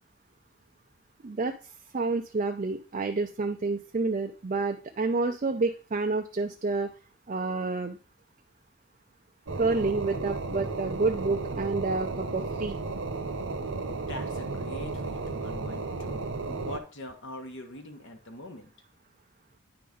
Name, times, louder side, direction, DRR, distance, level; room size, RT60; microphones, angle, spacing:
voice 1, 1.2-6.9 7.3-8.0 9.6-12.8, right 3 dB, 35° right, 5 dB, 0.4 m, -29 dB
sound 1, 9.5-16.8, right 3 dB, 60° right, 0.9 m, -34 dB
voice 2, 13.9-18.7, left 1 dB, 55° left, 4 dB, 1.0 m, -43 dB
9.5 x 3.9 x 5.0 m, 0.38 s
head